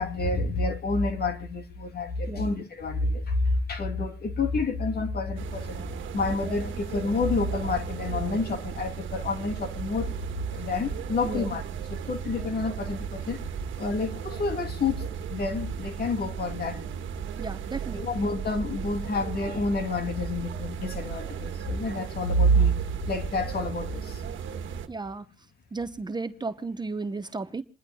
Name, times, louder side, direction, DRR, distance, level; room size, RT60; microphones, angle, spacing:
voice 1, 0.0-5.9 6.1-10.2 10.5-11.6 11.9-13.4 13.8-16.8 17.9-22.8 23.1-24.2, left 2 dB, 50° left, 2.7 m, -28 dB
sound 1, 5.4-24.9, right 7 dB, 75° right, 1.5 m, -36 dB
voice 2, 17.4-18.0 24.9-25.2 25.7-27.6, right 3 dB, 20° right, 0.9 m, -34 dB
28.0 x 11.0 x 2.3 m
cardioid pair, 90°, 20 cm